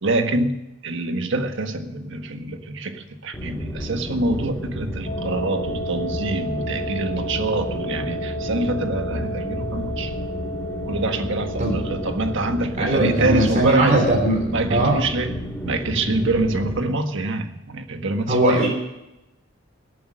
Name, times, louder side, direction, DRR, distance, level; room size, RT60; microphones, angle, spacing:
voice 1, 0.0-10.1 10.9-14.0 14.5-18.7, right 2 dB, 65° right, 7 dB, 1.5 m, -25 dB
sound 1, 3.3-16.8, equal, 10° left, 1.9 m, -32 dB
Wind instrument woodwind instrument, 5.0-12.9, equal, 55° left, 2.4 m, -32 dB
voice 2, 12.8-14.9 18.3-18.7, right 1 dB, 40° right, -2 dB, 3.5 m, -19 dB
18.5 x 8.6 x 6.3 m, 0.91 s
head